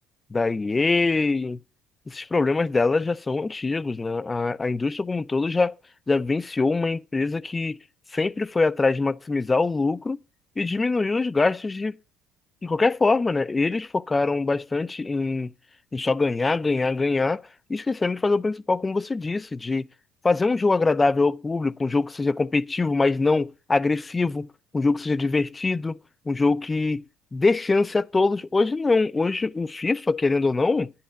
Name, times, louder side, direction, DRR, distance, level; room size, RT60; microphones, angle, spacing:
voice 1, 0.3-1.6 2.1-5.7 6.1-7.8 8.1-10.2 10.6-11.9 12.6-15.5 15.9-19.9 20.2-24.5 24.7-26.0 26.3-27.0 27.3-30.9, left 3 dB, 20° left, 0.5 m, -23 dB
11.5 x 10.0 x 5.8 m
supercardioid pair, 85°, 0 cm